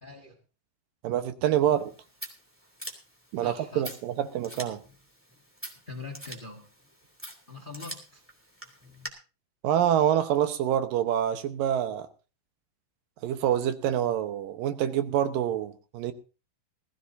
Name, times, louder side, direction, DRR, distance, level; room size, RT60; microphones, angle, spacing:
voice 1, 0.0-0.4 3.4-4.0 5.9-6.7 7.5-8.2, left 3 dB, 70° left, 0.4 m, -42 dB
voice 2, 1.0-1.9 3.3-4.8 9.6-12.1 13.2-16.1, right 10 dB, 75° right, 2.7 m, -26 dB
Scissors, 1.7-9.1, equal, 5° right, 2.2 m, -45 dB
20.0 x 14.5 x 2.7 m
omnidirectional pair, 4.0 m